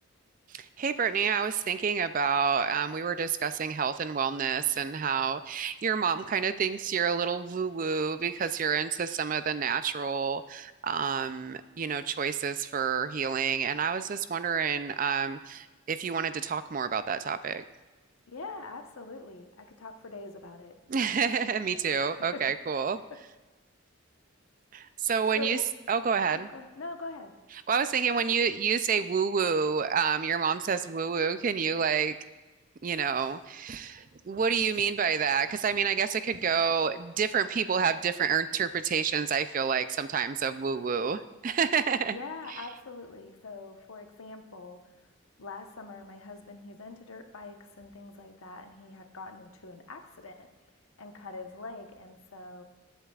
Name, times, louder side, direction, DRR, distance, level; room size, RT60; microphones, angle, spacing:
voice 1, 0.5-17.6 20.9-23.0 24.7-25.6 25.9-26.5 27.7-32.2 32.8-42.2, right 6 dB, 40° right, 12 dB, 0.3 m, -28 dB
voice 2, 18.3-20.8 22.3-22.4 25.3-25.6 26.3-27.4 42.1-44.9 45.4-50.5 51.0-52.6, left 3 dB, 85° left, 5 dB, 1.1 m, -43 dB
20.5 x 8.0 x 2.4 m, 1.2 s
head